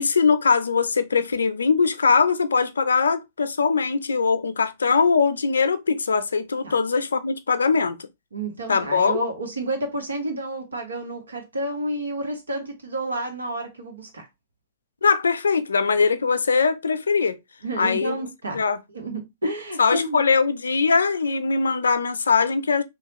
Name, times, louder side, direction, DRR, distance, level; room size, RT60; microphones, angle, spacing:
voice 1, 0.0-8.0 8.7-9.3 15.0-17.4 17.8-18.2 18.5-18.8 19.8-22.8, left 5 dB, 85° left, 0.4 m, -21 dB
voice 2, 8.3-14.3 17.6-18.6 18.9-20.2, right 1 dB, 85° right, 1.0 m, -30 dB
3.1 x 2.3 x 2.9 m
hypercardioid pair, 115°, 0 cm